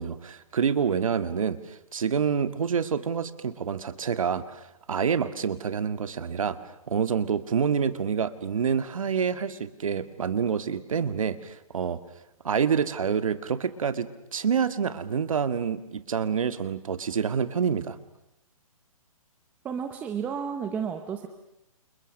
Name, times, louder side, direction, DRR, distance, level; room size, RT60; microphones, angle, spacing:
voice 1, 0.0-6.6 6.9-12.0 12.4-18.0, right 7 dB, 65° right, 12 dB, 2.0 m, -27 dB
voice 2, 19.6-21.3, right 7 dB, 10° right, 6 dB, 0.9 m, -32 dB
29.0 x 29.0 x 6.6 m, 0.87 s
hypercardioid pair, 170°, 18 cm